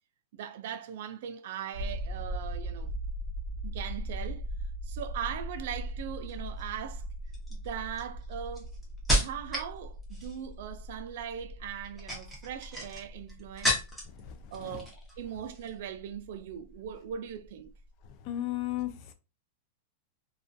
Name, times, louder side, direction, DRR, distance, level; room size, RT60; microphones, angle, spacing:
voice 1, 0.3-2.9 3.6-4.5 4.8-7.1 7.6-8.7 9.1-13.8 14.5-17.7, right 9 dB, 60° right, 0.3 m, -40 dB
sound 1, 1.7-17.8 18.1-18.2, right 1 dB, 75° left, 0.9 m, -40 dB
sound 2, 6.2-6.6 7.3-9.7 10.0-10.5 11.8-14.2 14.5-15.2 15.4-15.7, equal, 5° left, 0.7 m, -32 dB
voice 2, 14.2-14.8 18.2-19.1, left 13 dB, 40° left, 0.3 m, -35 dB
2.3 x 2.2 x 2.5 m
supercardioid pair, 160°, 0 cm